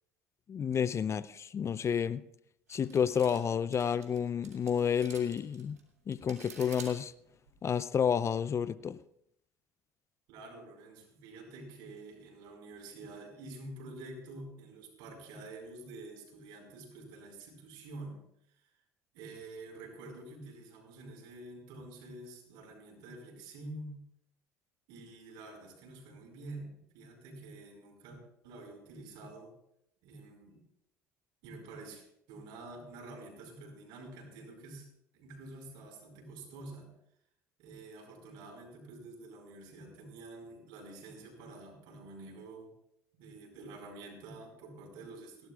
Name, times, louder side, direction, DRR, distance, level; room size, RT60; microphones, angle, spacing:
voice 1, 0.5-2.2 2.7-5.8 6.1-7.1 7.6-9.0, left 7 dB, 35° left, 18 dB, 0.5 m, -30 dB
sound 1, 2.7-7.7, right 5 dB, 90° right, 2.2 m, -51 dB
voice 2, 10.3-18.2 19.1-24.0 24.9-28.2 28.4-29.5 30.0-30.6 31.4-34.9 35.1-36.9 37.6-42.7 43.1-45.5, right 2 dB, 65° right, 2 dB, 5.2 m, -48 dB
30.0 x 11.5 x 2.4 m, 0.76 s
hypercardioid pair, 65°, 8 cm